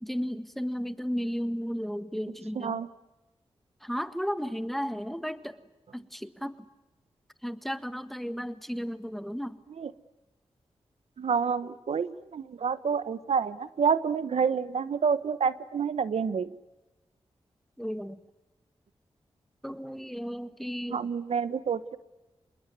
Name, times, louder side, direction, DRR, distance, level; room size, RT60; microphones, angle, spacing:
voice 1, 0.0-2.8 3.8-5.6 5.9-6.5 7.4-9.6 17.8-18.2 19.6-21.0, equal, ahead, 12 dB, 1.6 m, -34 dB
voice 2, 2.5-2.9 9.8-9.9 11.2-16.5 20.9-22.0, right 6 dB, 75° right, 15 dB, 0.9 m, -28 dB
26.5 x 21.0 x 9.4 m, 1.1 s
cardioid pair, 55°, 11 cm